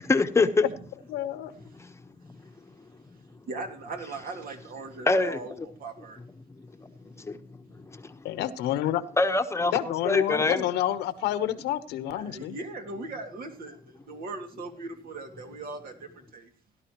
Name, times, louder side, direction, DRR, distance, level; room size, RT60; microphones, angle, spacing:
voice 1, 0.1-0.6 5.1-5.4 7.3-7.4 9.2-9.7 10.1-10.6, left 3 dB, 15° left, 7 dB, 1.1 m, -23 dB
voice 2, 1.1-1.5 8.2-9.0 9.7-12.6, left 12 dB, 85° left, 12 dB, 1.1 m, -29 dB
voice 3, 3.5-6.2 12.1-16.5, right 3 dB, 60° right, 5 dB, 2.5 m, -39 dB
17.5 x 11.5 x 3.1 m, 0.39 s
cardioid pair, 110°, 17 cm